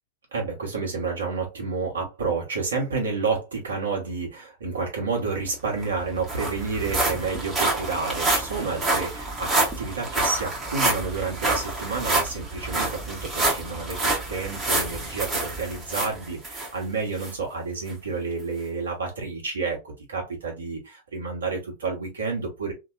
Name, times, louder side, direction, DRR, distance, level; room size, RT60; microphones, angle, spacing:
voice 1, 0.3-9.5 9.8-22.7, right 4 dB, 70° right, -1 dB, 1.4 m, -30 dB
sound 1, 5.5-5.6 5.8-16.7 17.2-17.3 17.9-18.0, right 2 dB, 15° right, 1.3 m, -27 dB
3.1 x 2.7 x 2.6 m, 0.25 s
figure-of-eight pair, 90°, 0 cm